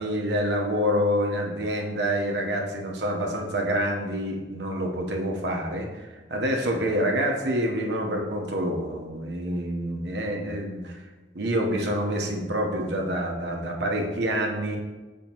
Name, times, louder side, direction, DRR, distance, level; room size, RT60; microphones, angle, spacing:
voice 1, 0.0-11.0 11.3-14.8, equal, 70° right, 1 dB, 0.9 m, -27 dB
7.2 x 5.4 x 2.9 m, 1.3 s
head